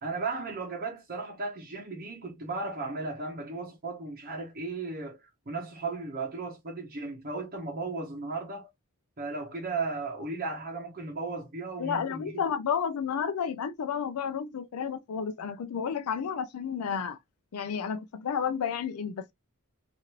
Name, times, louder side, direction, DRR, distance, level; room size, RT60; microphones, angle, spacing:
voice 1, 0.0-8.7 9.2-12.4, right 3 dB, 45° right, 0.7 m, -35 dB
voice 2, 11.8-17.2 17.5-19.3, left 7 dB, 90° left, 0.4 m, -31 dB
3.0 x 2.5 x 2.8 m
head